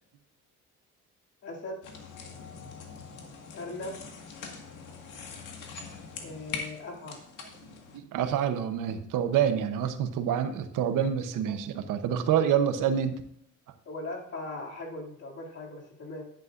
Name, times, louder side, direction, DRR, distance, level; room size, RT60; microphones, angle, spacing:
voice 1, 1.4-1.8 3.5-4.0 6.2-7.2 13.9-16.2, left 2 dB, 55° left, -2 dB, 2.7 m, -39 dB
sound 1, 1.8-8.0, left 5 dB, 75° left, 1.8 m, -43 dB
voice 2, 7.9-13.1, right 9 dB, 90° right, 9 dB, 0.9 m, -27 dB
11.0 x 10.5 x 2.6 m, 0.72 s
cardioid pair, 120°, 31 cm